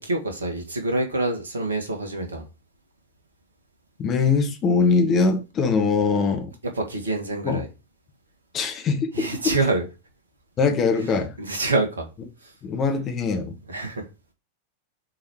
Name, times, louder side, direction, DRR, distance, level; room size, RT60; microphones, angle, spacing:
voice 1, 0.0-2.4 6.8-7.7 9.1-9.8 11.0-11.1 11.4-12.1 12.4-12.5 13.7-14.0, right 2 dB, 70° right, 2.2 m, -26 dB
voice 2, 4.0-6.5 7.4-7.6 8.5-9.5 10.6-11.3 12.6-13.5, left 4 dB, 30° left, 1.6 m, -22 dB
6.3 x 4.5 x 4.8 m
figure-of-eight pair, 90°, 0 cm